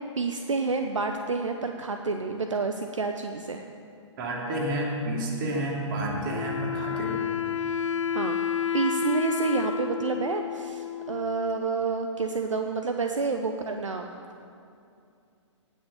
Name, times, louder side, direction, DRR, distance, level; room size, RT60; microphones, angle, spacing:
voice 1, 0.2-3.6 8.1-8.4 8.7-14.1, right 4 dB, 75° right, 5 dB, 0.8 m, -29 dB
voice 2, 4.2-7.1, right 1 dB, 40° right, -1 dB, 2.8 m, -30 dB
Wind instrument woodwind instrument, 6.2-11.7, left 6 dB, 75° left, 0.6 m, -30 dB
18.5 x 6.4 x 6.7 m, 2.5 s
figure-of-eight pair, 125°, 16 cm